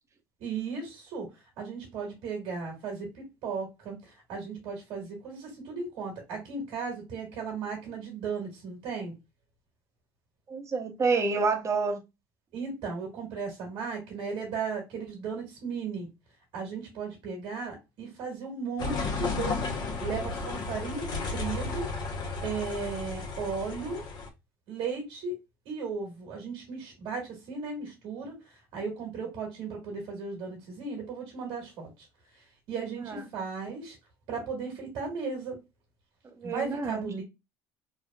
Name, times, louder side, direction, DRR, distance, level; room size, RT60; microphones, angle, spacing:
voice 1, 0.4-1.3 1.6-9.1 12.5-16.1 16.5-19.6 20.0-21.9 22.4-24.0 24.7-25.4 25.6-32.1 32.3-34.0 34.3-35.6 36.4-37.2, right 5 dB, 65° right, 1.5 m, -36 dB
voice 2, 10.5-12.0 33.1-33.2 36.4-37.1, right 4 dB, 30° right, 0.8 m, -28 dB
sound 1, 18.8-24.3, left 4 dB, 50° left, 0.8 m, -33 dB
3.2 x 2.3 x 2.2 m
supercardioid pair, 85°, 9 cm